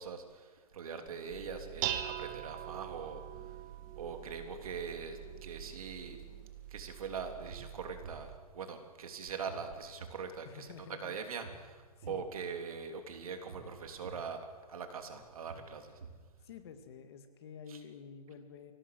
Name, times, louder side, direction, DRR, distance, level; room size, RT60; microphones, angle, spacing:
voice 1, 0.0-3.2 4.0-6.2 6.7-10.7 11.0-14.4 14.7-15.9 17.7-17.8, right 6 dB, 60° right, 5 dB, 3.3 m, -42 dB
sound 1, 1.0-6.6, left 1 dB, 10° left, 5.4 m, -66 dB
Dishes pots and pans, 1.3-8.4, right 12 dB, 25° right, 1.1 m, -43 dB
sound 2, 7.5-16.9, right 4 dB, 85° right, 4.7 m, -54 dB
voice 2, 10.4-11.2 12.0-12.2 16.4-18.7, left 6 dB, 40° left, 8 dB, 2.1 m, -50 dB
24.5 x 18.0 x 7.8 m, 1.4 s
hypercardioid pair, 165°, 20 cm